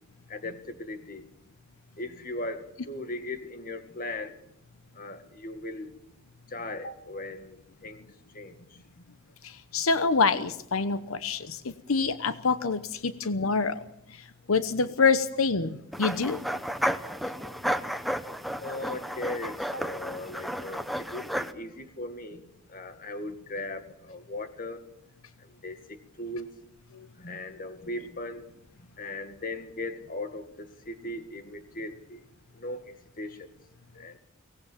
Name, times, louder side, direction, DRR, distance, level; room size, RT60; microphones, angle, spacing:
voice 1, 0.3-1.2 2.0-4.4 4.9-5.9 6.5-8.0 8.3-8.8 18.6-22.4 22.7-24.8 25.4-26.5 27.2-28.5 28.8-32.2 32.5-33.5 33.9-34.2, left 2 dB, 45° left, 8 dB, 2.0 m, -38 dB
voice 2, 9.4-13.8 14.1-16.4 26.9-27.1, left 4 dB, 85° left, 12 dB, 1.0 m, -26 dB
sound 1, 15.9-21.5, equal, ahead, 0.9 m, -32 dB
23.5 x 18.5 x 7.4 m, 0.78 s
head